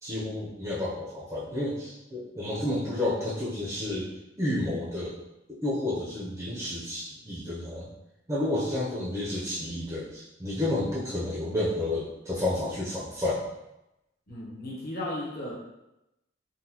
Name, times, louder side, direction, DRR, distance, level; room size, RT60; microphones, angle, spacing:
voice 1, 0.0-4.1 4.4-5.2 5.6-7.9 8.3-13.4, left 1 dB, 15° right, -7 dB, 0.6 m, -30 dB
voice 2, 14.3-15.5, left 1 dB, 50° left, -5 dB, 0.9 m, -35 dB
3.9 x 2.2 x 2.8 m, 0.91 s
head